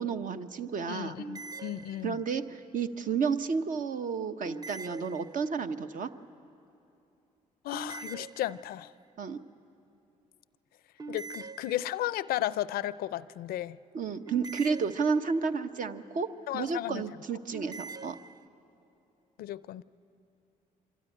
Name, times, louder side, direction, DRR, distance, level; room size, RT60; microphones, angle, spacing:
voice 1, 0.0-1.2 2.0-6.1 9.2-9.4 13.9-18.2, right 5 dB, 60° right, 9 dB, 0.9 m, -31 dB
voice 2, 0.9-2.2 7.6-8.9 11.1-13.8 16.5-17.0 19.4-19.8, left 13 dB, 80° left, 17 dB, 0.4 m, -34 dB
sound 1, 1.2-2.5 4.4-5.8 7.7-9.0 11.0-12.3 14.3-15.6 17.5-18.5, right 4 dB, 25° right, 0.5 m, -44 dB
24.5 x 13.5 x 9.9 m, 2.8 s
cardioid pair, 70°, 15 cm